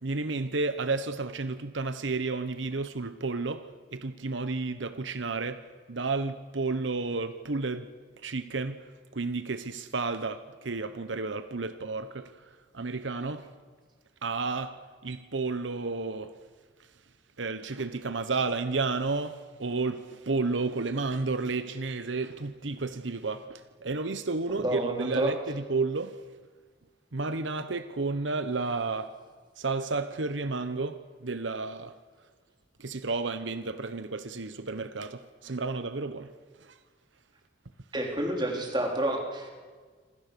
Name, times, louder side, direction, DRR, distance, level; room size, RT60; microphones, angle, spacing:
voice 1, 0.0-5.6 5.9-7.9 8.2-8.8 9.1-13.5 14.2-16.3 17.4-26.2 27.1-29.1 29.6-31.9 32.8-36.3 36.6-36.8, right 3 dB, 85° right, 11 dB, 1.0 m, -32 dB
voice 2, 24.6-25.3 37.9-39.5, right 1 dB, 25° right, 1 dB, 3.9 m, -29 dB
27.0 x 26.5 x 6.9 m, 1.5 s
head